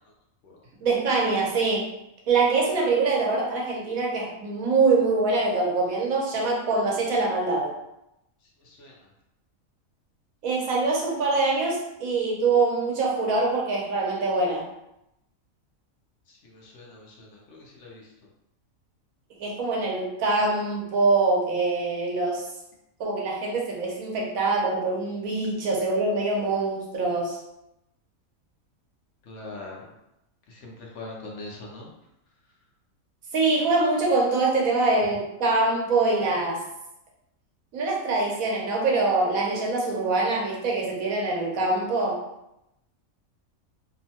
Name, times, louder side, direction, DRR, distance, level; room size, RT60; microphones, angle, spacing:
voice 1, 0.8-1.9 2.3-7.7 10.4-14.6 19.4-22.5 23.0-27.4 33.3-36.6 37.7-42.2, right 3 dB, 75° right, -2 dB, 1.1 m, -24 dB
voice 2, 8.6-8.9 16.3-18.1 29.2-29.9 30.5-31.9, left 2 dB, 65° left, -2 dB, 0.9 m, -42 dB
3.0 x 2.1 x 2.8 m, 0.85 s
omnidirectional pair, 1.5 m